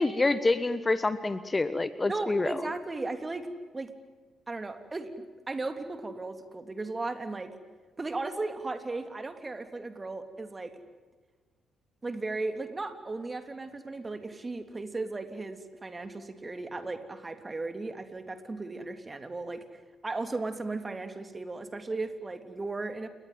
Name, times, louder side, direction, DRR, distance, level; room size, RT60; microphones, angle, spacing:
voice 1, 0.0-2.6, left 3 dB, 25° left, 14 dB, 1.3 m, -27 dB
voice 2, 2.0-3.5 3.7-3.9 4.5-7.5 8.0-10.7 12.0-19.6 20.0-23.1, right 3 dB, 25° right, 8 dB, 3.2 m, -36 dB
29.5 x 21.0 x 9.3 m, 1.4 s
figure-of-eight pair, 40°, 0 cm